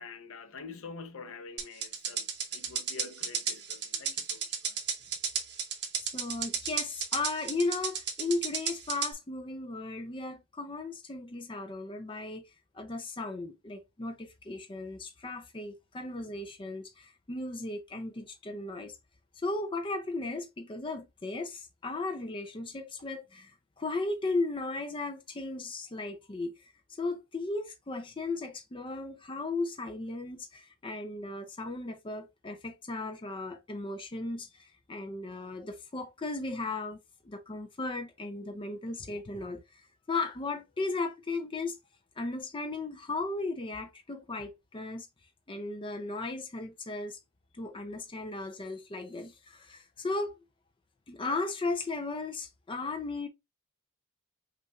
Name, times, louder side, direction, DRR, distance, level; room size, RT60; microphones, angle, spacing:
voice 1, 0.0-2.3 2.5-4.8, left 4 dB, 65° left, 0.7 m, -46 dB
sound 1, 1.6-9.1, right 7 dB, 50° right, 1.0 m, -33 dB
voice 2, 6.0-12.4 12.7-19.0 19.4-37.0 37.2-41.8 42.2-45.1 45.5-47.2 47.5-50.3 51.1-53.3, left 3 dB, 25° left, 0.5 m, -36 dB
5.4 x 2.5 x 2.9 m
head